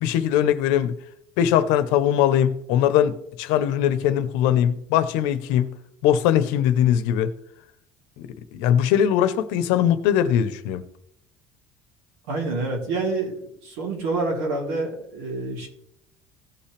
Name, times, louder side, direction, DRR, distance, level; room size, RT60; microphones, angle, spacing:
voice 1, 0.0-1.0 1.4-5.7 6.0-7.3 8.2-10.8, left 10 dB, 80° left, 0.9 m, -21 dB
voice 2, 12.3-13.4 13.6-15.7, right 3 dB, 85° right, 3.4 m, -27 dB
16.5 x 5.8 x 3.4 m
cardioid pair, 175°, 6 cm